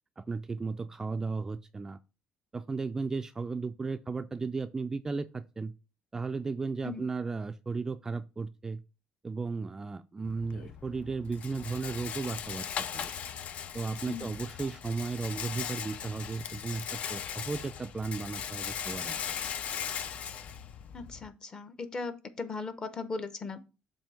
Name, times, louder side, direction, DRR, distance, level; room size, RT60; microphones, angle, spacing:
voice 1, 0.2-2.0 2.5-5.7 6.1-8.8 9.2-12.7 12.9-13.1 13.7-19.4, right 4 dB, 20° right, 0.3 m, -35 dB
Rattle, 10.2-21.3, left 8 dB, 55° left, 0.4 m, -39 dB
voice 2, 20.9-23.7, left 4 dB, 30° left, 0.8 m, -38 dB
7.3 x 2.7 x 5.5 m
cardioid pair, 120°, 3 cm